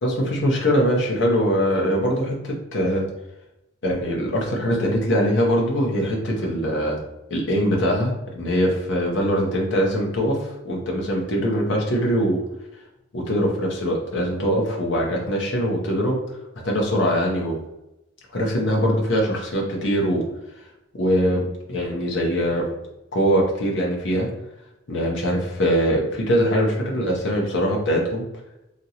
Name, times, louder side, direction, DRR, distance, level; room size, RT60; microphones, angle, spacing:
voice 1, 0.0-3.1 3.8-7.0 7.3-12.4 13.1-16.2 16.6-17.6 18.3-20.2 20.9-22.7 23.1-24.3 24.9-28.2, equal, 60° left, -2 dB, 0.7 m, -22 dB
2.9 x 2.5 x 2.8 m, 0.92 s
head